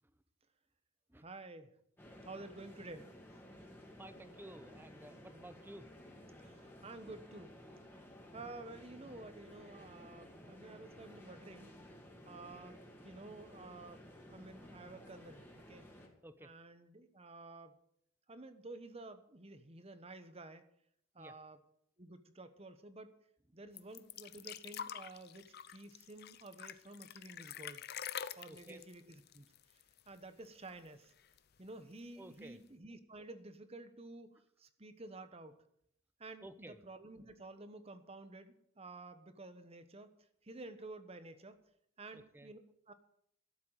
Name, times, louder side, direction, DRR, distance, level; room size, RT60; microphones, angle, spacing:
voice 1, 1.2-1.8 2.2-3.1 6.4-7.5 8.3-11.7 12.2-15.9 16.4-17.8 18.3-20.6 21.1-21.6 22.0-23.1 23.5-25.5 25.7-27.9 28.4-29.5 30.1-31.1 31.6-35.6 36.2-40.1 40.4-41.6 42.0-42.6 42.9-43.0, right 2 dB, 30° right, 11 dB, 1.1 m, -51 dB
sound 1, 2.0-16.1, equal, 10° left, 2.3 m, -55 dB
voice 2, 4.0-5.9 7.1-7.2 10.2-10.3 16.2-16.5 21.2-21.3 28.5-28.8 32.2-32.6 36.4-36.8 42.1-42.5, right 1 dB, 10° right, 11 dB, 0.8 m, -53 dB
sound 2, 23.8-30.2 30.4-30.5 30.9-31.6 32.4-32.5, left 9 dB, 55° left, 0.6 m, -46 dB
13.0 x 7.5 x 9.0 m, 0.71 s
head